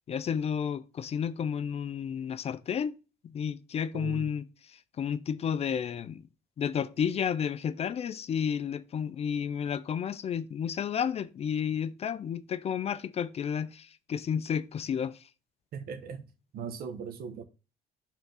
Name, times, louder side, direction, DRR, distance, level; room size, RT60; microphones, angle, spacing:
voice 1, 0.1-2.9 3.2-6.3 6.6-15.3, left 7 dB, 40° left, 0.4 m, -32 dB
voice 2, 3.9-4.2 15.7-16.2 16.5-17.4, right 7 dB, 65° right, 1.0 m, -39 dB
5.7 x 3.6 x 5.6 m
cardioid pair, 110°, 17 cm